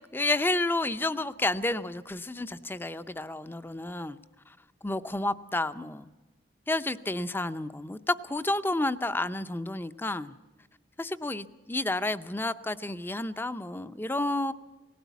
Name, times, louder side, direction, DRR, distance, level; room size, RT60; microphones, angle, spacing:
voice 1, 0.1-4.2 4.8-6.1 6.7-10.3 11.0-14.5, left 2 dB, 10° left, 0.5 m, -30 dB
19.0 x 16.5 x 8.2 m
head